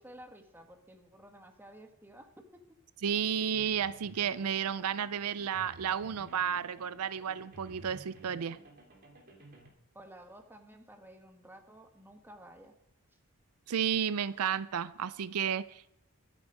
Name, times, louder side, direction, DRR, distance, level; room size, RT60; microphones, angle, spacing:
voice 1, 0.0-2.6 9.9-12.7, right 1 dB, 10° right, 1.7 m, -53 dB
voice 2, 3.0-8.6 13.7-15.9, right 8 dB, 80° right, 0.5 m, -32 dB
sound 1, 3.1-9.7, right 1 dB, 45° right, 3.3 m, -54 dB
24.0 x 8.5 x 5.1 m
head